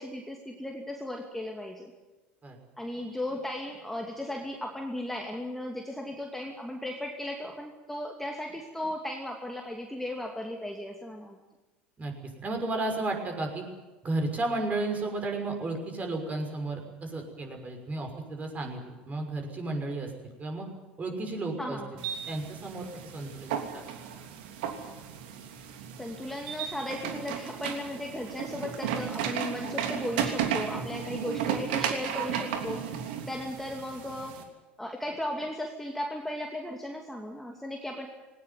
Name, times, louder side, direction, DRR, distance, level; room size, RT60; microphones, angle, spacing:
voice 1, 0.0-1.9 2.8-11.4 21.6-22.0 26.0-34.5 34.8-38.1, left 1 dB, 5° left, 2 dB, 2.6 m, -36 dB
voice 2, 12.0-13.6 14.0-20.7 21.0-22.9 23.1-23.8, right 2 dB, 25° right, 3 dB, 6.3 m, -33 dB
sound 1, 22.0-34.4, right 8 dB, 65° right, 3.0 m, -34 dB
20.0 x 19.0 x 9.5 m, 1.2 s
figure-of-eight pair, 75°, 6 cm